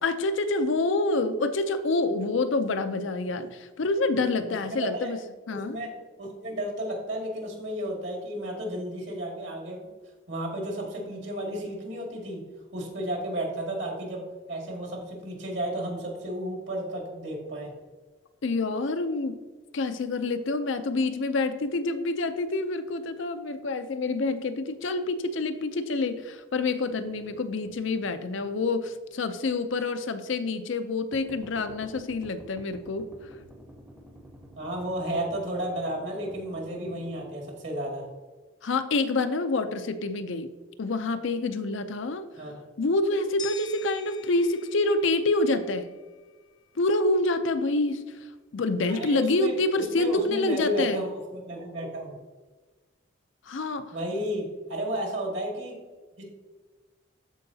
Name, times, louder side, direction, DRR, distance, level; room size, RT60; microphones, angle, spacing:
voice 1, 0.0-5.2 5.5-5.8 18.4-19.4 19.7-33.1 38.6-40.5 40.8-42.3 42.8-45.9 46.8-48.2 48.5-51.0 53.5-53.9, left 2 dB, 70° left, 9 dB, 0.5 m, -27 dB
voice 2, 4.5-5.1 5.5-5.9 6.2-9.9 10.3-12.4 12.7-17.7 34.6-38.1 42.4-42.5 48.9-49.5 49.8-52.2 53.9-55.7 56.2-56.3, right 1 dB, 65° right, -1 dB, 2.1 m, -33 dB
sound 1, 26.9-29.1 29.5-29.6 31.1-37.3, equal, 10° right, 0.7 m, -50 dB
sound 2, 43.4-46.3, left 6 dB, 20° left, 0.7 m, -45 dB
13.5 x 4.7 x 2.8 m, 1.3 s
head